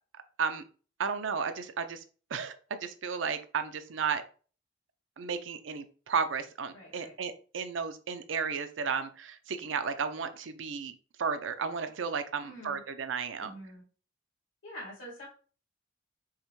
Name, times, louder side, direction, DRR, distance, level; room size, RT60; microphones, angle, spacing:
voice 1, 1.0-2.0 2.3-4.2 5.2-10.9 11.2-13.5, right 6 dB, 75° right, 9 dB, 0.5 m, -33 dB
voice 2, 6.7-7.1 12.4-12.8 13.4-13.9 14.6-15.3, equal, 85° left, -3 dB, 2.1 m, -46 dB
5.6 x 2.1 x 3.1 m, 0.39 s
head